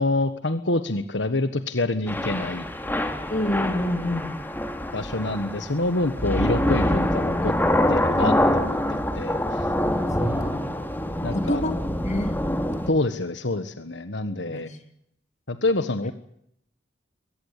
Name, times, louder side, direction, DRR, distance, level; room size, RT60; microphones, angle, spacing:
voice 1, 0.0-2.7 4.9-7.5 7.9-9.7 11.2-11.6 12.9-14.7 15.5-16.1, left 2 dB, 75° left, 10 dB, 1.5 m, -27 dB
Thunder / Rain, 2.1-12.9, left 1 dB, 10° left, 3.2 m, -25 dB
voice 2, 3.3-4.4 9.8-10.7 11.3-12.3 14.4-14.6, left 1 dB, 40° left, 7 dB, 3.5 m, -28 dB
sound 1, 9.7-10.9, right 1 dB, 10° right, 7.8 m, -33 dB
23.0 x 19.5 x 8.4 m, 0.73 s
head